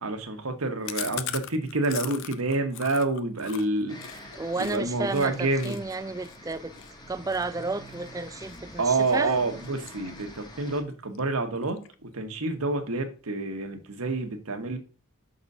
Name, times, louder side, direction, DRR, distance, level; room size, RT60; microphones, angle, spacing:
voice 1, 0.0-4.0 4.6-5.8 8.8-14.8, right 2 dB, 75° right, 1.2 m, -28 dB
Chewing mastication, 0.8-4.8 5.1-5.3 5.6-8.6 9.0-9.3 9.6-10.5 10.8-10.9 11.1-11.2 11.5-12.1, left 11 dB, 60° left, 0.5 m, -39 dB
sound 1, 3.9-10.8, left 1 dB, 20° left, 1.2 m, -46 dB
voice 2, 4.3-6.7 7.1-9.4, right 3 dB, 15° right, 0.3 m, -32 dB
6.0 x 4.0 x 5.3 m
head